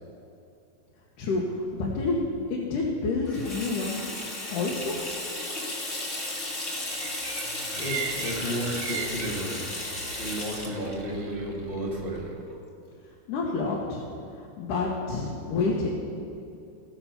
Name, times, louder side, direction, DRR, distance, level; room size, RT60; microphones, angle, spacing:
voice 1, 1.2-2.2 2.5-4.2 4.5-5.0 13.3-14.0 14.4-15.9, left 3 dB, 85° left, -3 dB, 2.7 m, -28 dB
Water tap faucet / Sink (filling or washing), 3.2-12.6, left 1 dB, 40° left, 1.2 m, -35 dB
sound 1, 6.9-12.3, right 5 dB, 55° right, 1.7 m, -39 dB
voice 2, 7.8-9.7 10.2-12.4, equal, 65° left, -5 dB, 0.5 m, -33 dB
18.0 x 5.9 x 5.8 m, 2.6 s
omnidirectional pair, 3.6 m